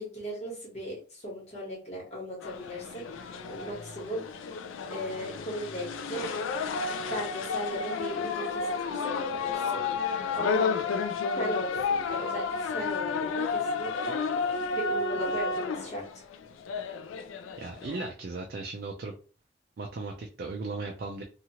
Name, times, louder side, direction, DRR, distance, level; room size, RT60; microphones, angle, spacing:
voice 1, 0.0-4.2 4.9-6.3 7.0-9.8 10.4-10.7 11.4-14.2 14.7-16.2, equal, 35° left, -3 dB, 1.2 m, -37 dB
sound 1, 2.4-18.1, left 4 dB, 90° left, 0.4 m, -32 dB
voice 2, 17.6-19.1 19.8-21.2, right 3 dB, 50° right, 2 dB, 0.4 m, -36 dB
2.8 x 2.4 x 2.8 m, 0.38 s
head